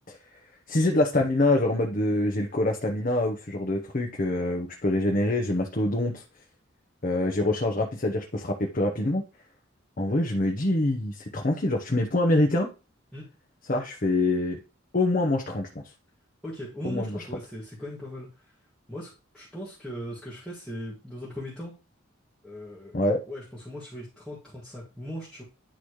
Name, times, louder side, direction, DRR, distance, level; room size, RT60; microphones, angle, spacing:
voice 1, 0.7-6.2 7.0-9.2 10.0-12.7 13.7-14.6 14.9-15.8 16.8-17.2 22.9-23.2, left 2 dB, 45° left, 2 dB, 0.9 m, -25 dB
voice 2, 16.4-18.5 18.9-19.1 19.3-21.7 22.4-25.4, equal, 5° left, -9 dB, 2.0 m, -39 dB
10.0 x 4.0 x 3.2 m, 0.30 s
head